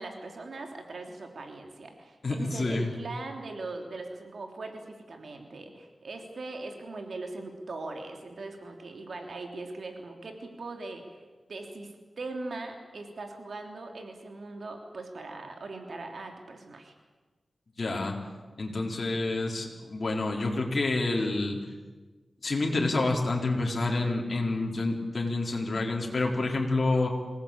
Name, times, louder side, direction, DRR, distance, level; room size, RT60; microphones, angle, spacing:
voice 1, 0.0-11.2 11.5-16.9, right 3 dB, 70° right, 4 dB, 3.3 m, -40 dB
voice 2, 2.2-2.9 17.8-18.2 18.6-21.6 22.4-27.1, left 2 dB, 50° left, 0 dB, 4.2 m, -28 dB
26.0 x 18.0 x 8.7 m, 1.3 s
wide cardioid pair, 85°, 0 cm